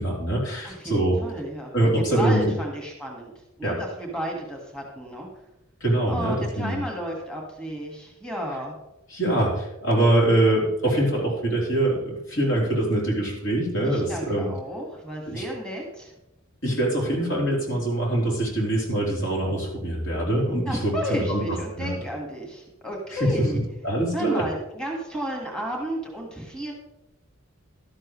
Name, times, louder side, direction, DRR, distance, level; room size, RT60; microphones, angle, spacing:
voice 1, 0.0-1.2 1.7-2.5 3.6-3.8 5.8-6.8 9.1-14.5 15.3-15.5 16.6-21.9 23.2-23.5 23.8-24.5, right 1 dB, 65° left, -2 dB, 3.9 m, -24 dB
voice 2, 0.6-3.3 3.6-5.4 6.1-8.8 13.8-16.1 20.3-23.6 24.1-26.7, right 1 dB, 5° left, 0 dB, 1.9 m, -32 dB
12.5 x 11.0 x 3.2 m, 0.90 s
head